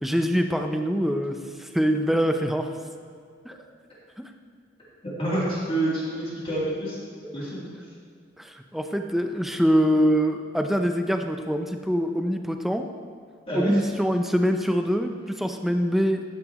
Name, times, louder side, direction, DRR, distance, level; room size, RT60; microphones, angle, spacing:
voice 1, 0.0-2.7 3.4-3.5 4.2-4.3 7.2-7.3 8.4-12.9 13.5-16.2, equal, ahead, 5 dB, 0.6 m, -24 dB
voice 2, 5.2-7.0 7.3-7.7 13.5-13.7, right 1 dB, 30° left, -8 dB, 3.1 m, -27 dB
14.0 x 10.0 x 3.1 m, 2.2 s
head